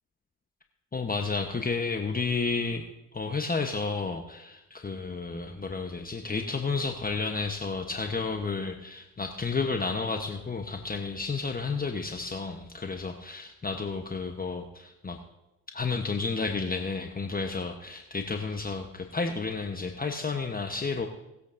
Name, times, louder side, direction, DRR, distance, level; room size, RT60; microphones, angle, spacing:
voice 1, 0.9-2.8 3.1-15.2 15.7-21.1, left 4 dB, 25° left, 4 dB, 1.1 m, -31 dB
19.5 x 8.1 x 2.7 m, 0.95 s
hypercardioid pair, 55°, 36 cm